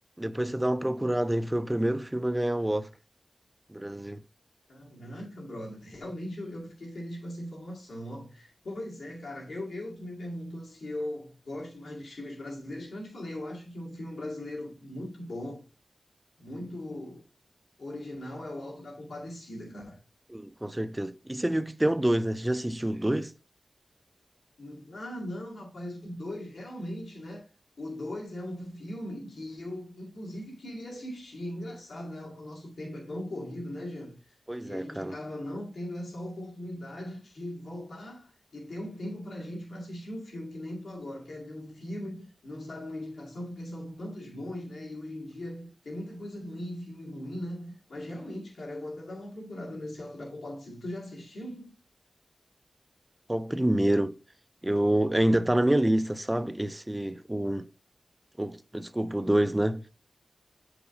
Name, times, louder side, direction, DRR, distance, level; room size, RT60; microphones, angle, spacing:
voice 1, 0.2-2.9 3.7-4.2 20.3-23.3 34.5-35.1 53.3-54.2 54.6-57.7 58.4-59.8, right 1 dB, 15° right, 0.3 m, -27 dB
voice 2, 4.7-15.6 16.4-17.2 17.8-20.0 24.6-27.4 27.8-51.7, left 1 dB, 90° left, 2.0 m, -39 dB
8.8 x 4.9 x 2.5 m
wide cardioid pair, 100°, 0 cm